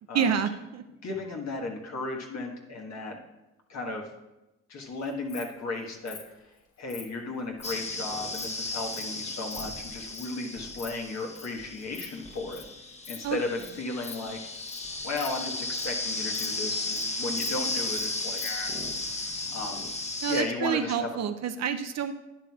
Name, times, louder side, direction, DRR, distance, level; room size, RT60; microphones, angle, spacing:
voice 1, 0.1-0.8 13.2-13.4 20.2-22.1, right 8 dB, 60° right, 7 dB, 0.6 m, -28 dB
voice 2, 1.0-3.2 3.7-4.1 4.7-6.5 6.8-12.6 13.1-14.4 15.0-18.7 19.0-19.9 20.3-21.2, left 2 dB, 60° left, 0 dB, 1.5 m, -35 dB
Insect, 5.0-5.4 6.1-6.2 6.9-7.1 7.5-7.7 8.1-8.5 8.9-9.0 9.3-9.6 10.1-10.3 10.6-10.9 11.2-11.5 11.8-12.1 12.3-12.6 13.0-13.2 13.6-13.7 14.0-14.2 14.5-14.8 15.1-16.0 16.3-16.5 16.8-17.0 17.4-18.1 18.4-18.5, left 7 dB, 90° left, 1.3 m, -43 dB
sound 1, 7.6-20.4, left 2 dB, 20° left, 1.0 m, -35 dB
11.5 x 9.4 x 2.4 m, 0.99 s
cardioid pair, 90°, 30 cm